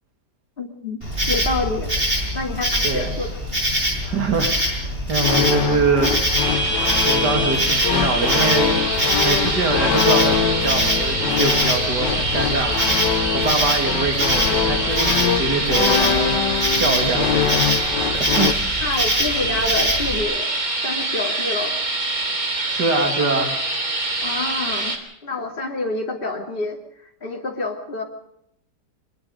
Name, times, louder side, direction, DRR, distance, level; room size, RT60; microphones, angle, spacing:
voice 1, 0.6-1.0 1.3-1.9 2.3-3.4 12.5-13.0 18.8-20.5 20.8-21.8 24.2-25.0 25.2-26.8 27.2-28.0, left 2 dB, 30° left, -1 dB, 3.2 m, -27 dB
Insect, 1.0-20.2, equal, 30° right, 7.3 m, -24 dB
voice 2, 4.0-6.6 7.0-8.8 9.2-12.8 13.1-16.3 16.8-17.7 18.1-18.5 22.7-23.6, right 3 dB, 75° right, 3 dB, 3.2 m, -24 dB
sound 1, 5.2-18.5, left 8 dB, 85° left, 1.7 m, -24 dB
sound 2, 6.3-25.0, right 2 dB, 55° right, 3.7 m, -25 dB
24.0 x 21.5 x 5.3 m, 0.75 s
omnidirectional pair, 1.8 m